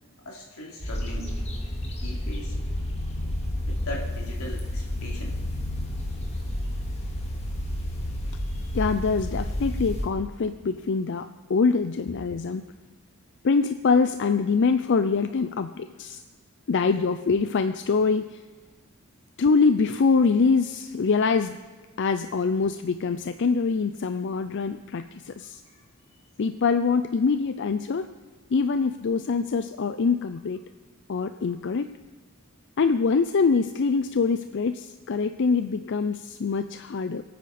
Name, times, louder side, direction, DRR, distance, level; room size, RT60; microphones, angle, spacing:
voice 1, 0.2-1.3 1.8-2.6 3.6-5.4 8.4-8.7, left 1 dB, 90° left, -1 dB, 2.9 m, -40 dB
sound 1, 0.8-10.1, left 1 dB, 30° left, 2.0 m, -30 dB
voice 2, 8.7-12.7 13.4-16.2 16.7-18.4 19.4-21.6 22.0-25.6 26.4-28.1 28.5-30.6 31.1-31.9 32.8-37.2, left 4 dB, 55° left, 10 dB, 0.4 m, -24 dB
22.5 x 9.3 x 4.2 m, 1.4 s
head